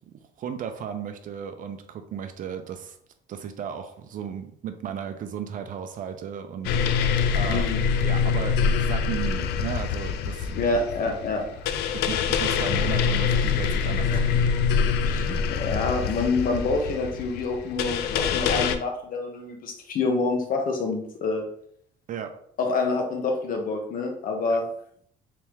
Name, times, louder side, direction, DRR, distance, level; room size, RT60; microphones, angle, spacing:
voice 1, 0.1-3.0 3.3-7.7 8.0-10.6 11.9-14.2 22.1-22.3 24.5-24.6, right 8 dB, 50° right, 7 dB, 0.6 m, -35 dB
sound 1, 6.6-18.8, left 6 dB, 75° left, 0.4 m, -25 dB
voice 2, 7.5-7.8 10.6-11.7 14.0-14.2 15.0-21.4 22.6-24.7, left 3 dB, 55° left, 3 dB, 0.9 m, -27 dB
3.4 x 3.3 x 3.0 m, 0.66 s
cardioid pair, 110°, 17 cm